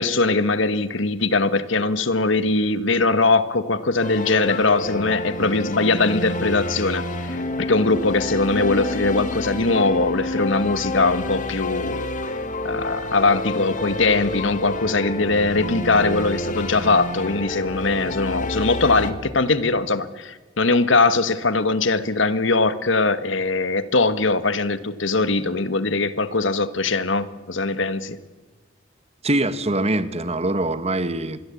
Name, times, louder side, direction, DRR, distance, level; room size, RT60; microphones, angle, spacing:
voice 1, 0.0-12.1 12.6-28.2, left 3 dB, 70° left, 1.5 m, -21 dB
sound 1, 4.0-19.1, left 2 dB, 40° left, 2.1 m, -29 dB
voice 2, 29.2-31.4, right 1 dB, 35° right, 1.6 m, -23 dB
26.0 x 22.0 x 8.5 m
head